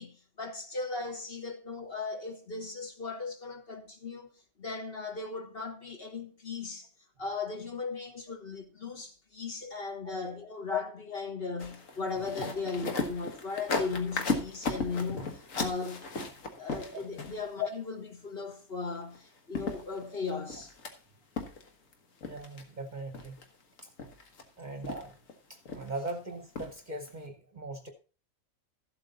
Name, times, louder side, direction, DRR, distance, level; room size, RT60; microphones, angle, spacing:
voice 1, 0.0-4.3 4.6-6.9 7.2-16.0 16.6-20.7, left 4 dB, 45° left, 1.6 m, -37 dB
sound 1, 11.6-17.6 19.1-19.2 19.5-20.9 21.4-21.9 22.2-22.6 23.1-23.4 23.8-24.4 24.8-25.3 25.7-26.1 26.6-26.8 27.1-27.2, left 3 dB, 70° left, 1.8 m, -36 dB
voice 2, 22.2-23.4 24.6-25.1 25.5-27.9, right 2 dB, 35° right, 1.0 m, -40 dB
13.5 x 7.8 x 4.1 m
omnidirectional pair, 1.5 m